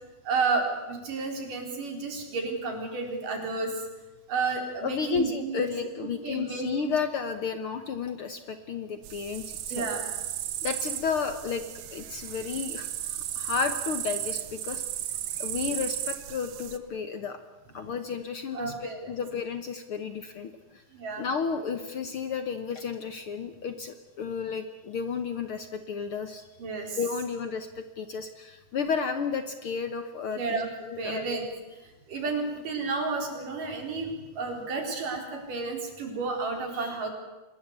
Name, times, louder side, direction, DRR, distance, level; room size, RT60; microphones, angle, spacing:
voice 1, 0.2-3.9 4.3-5.7 6.2-6.9 9.7-10.1 18.5-19.1 20.9-21.3 26.6-27.0 30.4-30.7 31.0-31.4 31.8-37.1, right 4 dB, 85° right, 3 dB, 5.8 m, -31 dB
voice 2, 4.8-9.9 10.6-11.6 11.9-14.8 15.4-17.4 17.7-20.8 21.2-26.5 27.0-31.4, left 6 dB, 60° left, 9 dB, 1.5 m, -32 dB
sound 1, 9.0-16.8, right 12 dB, 65° right, 1.8 m, -35 dB
24.5 x 20.5 x 8.2 m, 1.1 s
omnidirectional pair, 3.6 m